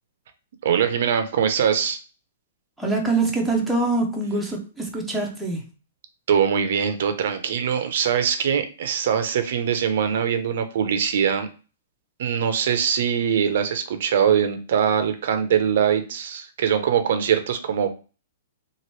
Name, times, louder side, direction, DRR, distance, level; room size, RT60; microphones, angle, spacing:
voice 1, 0.6-2.0 6.3-11.5 12.2-17.9, right 8 dB, 60° right, 0.5 m, -22 dB
voice 2, 2.8-5.7, right 3 dB, ahead, 0.5 m, -24 dB
2.9 x 2.5 x 3.0 m
hypercardioid pair, 165°, 0 cm